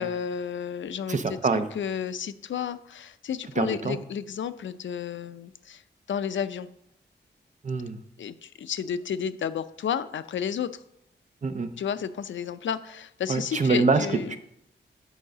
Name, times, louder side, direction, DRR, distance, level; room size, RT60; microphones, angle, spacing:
voice 1, 0.0-5.8 6.1-6.7 8.2-10.8 11.8-14.3, left 8 dB, 85° left, 13 dB, 0.5 m, -32 dB
voice 2, 1.1-1.7 3.6-4.0 7.6-8.0 11.4-11.7 13.3-14.4, right 4 dB, 40° right, 9 dB, 0.7 m, -25 dB
10.0 x 4.8 x 6.6 m, 0.76 s
wide cardioid pair, 160°, 19 cm